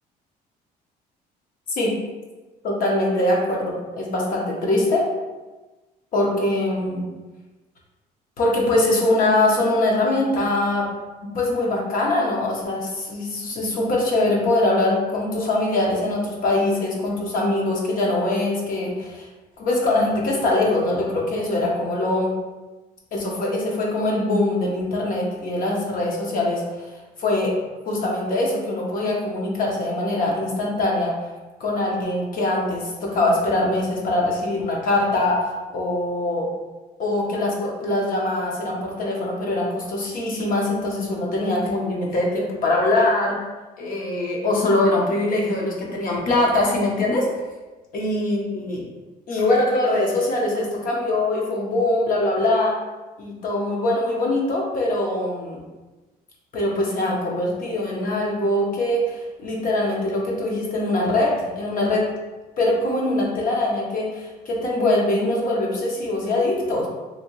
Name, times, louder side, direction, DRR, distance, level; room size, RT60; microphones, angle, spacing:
voice 1, 2.6-5.1 6.1-7.1 8.4-10.9 11.2-19.3 19.6-22.3 23.1-26.9 27.2-27.6 27.9-31.1 31.6-36.5 37.0-43.4 43.8-47.3 47.9-48.8 49.3-52.7 53.2-55.6 56.5-62.1 62.6-66.9, left 2 dB, 55° left, -2 dB, 1.0 m, -22 dB
3.3 x 2.8 x 2.9 m, 1.2 s
cardioid pair, 110°, 17 cm